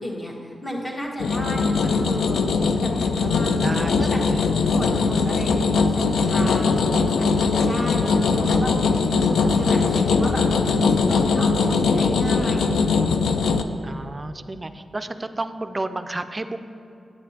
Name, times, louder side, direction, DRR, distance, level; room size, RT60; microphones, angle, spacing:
voice 1, 0.0-4.2 4.7-10.4 11.1-13.3, left 1 dB, 30° left, -2 dB, 1.4 m, -32 dB
sound 1, 1.2-13.6, left 4 dB, 85° left, 0.3 m, -21 dB
voice 2, 3.6-4.5 13.8-16.6, right 2 dB, 30° right, 10 dB, 0.4 m, -32 dB
9.3 x 8.2 x 2.8 m, 2.6 s
cardioid pair, 55°, 0 cm